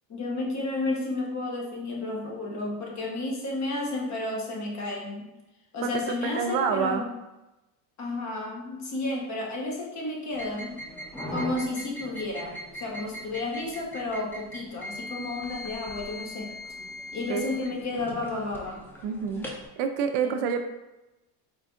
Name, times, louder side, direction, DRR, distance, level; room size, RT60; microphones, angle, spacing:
voice 1, 0.1-5.3 5.7-7.1 8.0-10.7 11.3-16.5 17.1-18.8 20.2-20.4, left 2 dB, 35° left, -1 dB, 1.1 m, -32 dB
voice 2, 5.8-7.0 17.3-17.4 19.0-19.5 19.8-20.6, right 7 dB, 60° right, 7 dB, 0.5 m, -27 dB
sound 1, 10.3-19.7, equal, 5° left, 0.4 m, -40 dB
4.3 x 3.8 x 2.4 m, 1.0 s
cardioid pair, 125°, 48 cm